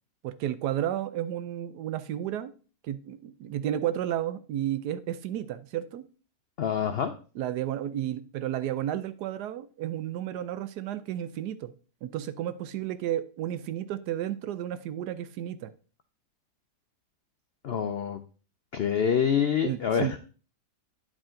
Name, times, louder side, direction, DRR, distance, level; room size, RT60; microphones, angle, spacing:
voice 1, 0.2-2.5 2.8-6.0 7.4-11.7 12.0-15.7 19.6-20.1, right 11 dB, 80° right, 13 dB, 1.2 m, -32 dB
voice 2, 6.6-7.1 17.6-18.2 18.7-20.2, left 7 dB, 80° left, 8 dB, 0.5 m, -26 dB
9.6 x 5.0 x 3.7 m, 0.38 s
omnidirectional pair, 1.7 m